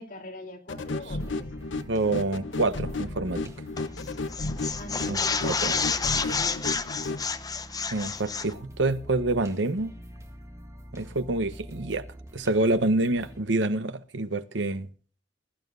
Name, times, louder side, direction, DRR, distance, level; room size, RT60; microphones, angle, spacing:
voice 1, 0.0-1.5 4.7-7.2, left 1 dB, 50° left, 3.1 m, -42 dB
sound 1, 0.7-7.2, left 2 dB, 85° left, 0.9 m, -34 dB
sound 2, 0.7-13.4, equal, 15° right, 2.0 m, -46 dB
voice 2, 1.9-3.4 5.1-5.7 7.9-9.9 10.9-12.1 12.3-14.9, right 2 dB, 75° right, 0.9 m, -27 dB
sound 3, 3.8-4.0 4.3-8.5, left 5 dB, 20° left, 0.8 m, -29 dB
21.5 x 11.5 x 2.6 m
head